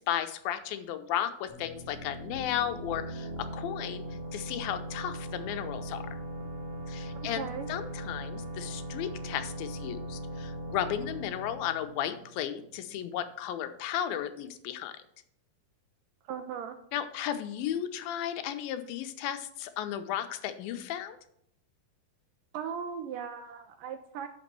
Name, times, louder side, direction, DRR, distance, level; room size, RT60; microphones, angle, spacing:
voice 1, 0.0-4.0 4.3-6.2 6.9-14.9 16.9-21.2, left 10 dB, 80° left, 9 dB, 2.4 m, -34 dB
sound 1, 1.5-13.0, equal, 60° right, 2.6 m, -40 dB
voice 2, 7.2-7.7 16.2-16.8 22.5-24.3, right 7 dB, 80° right, 7 dB, 2.0 m, -38 dB
6.3 x 6.0 x 7.3 m, 0.70 s
omnidirectional pair, 4.3 m